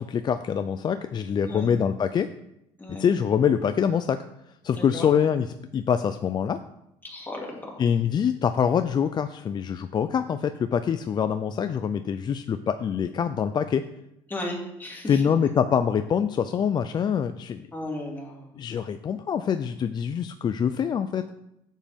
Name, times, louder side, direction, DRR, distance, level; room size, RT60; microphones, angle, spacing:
voice 1, 0.0-2.3 3.0-4.2 4.6-5.5 5.7-6.6 7.8-13.8 15.1-17.7 18.6-21.3, left 7 dB, 35° left, 10 dB, 0.4 m, -25 dB
voice 2, 4.7-5.1 7.0-7.7 14.3-15.2 17.7-18.5, left 1 dB, 15° left, -2 dB, 2.6 m, -35 dB
8.9 x 7.3 x 3.6 m, 0.84 s
cardioid pair, 95°, 12 cm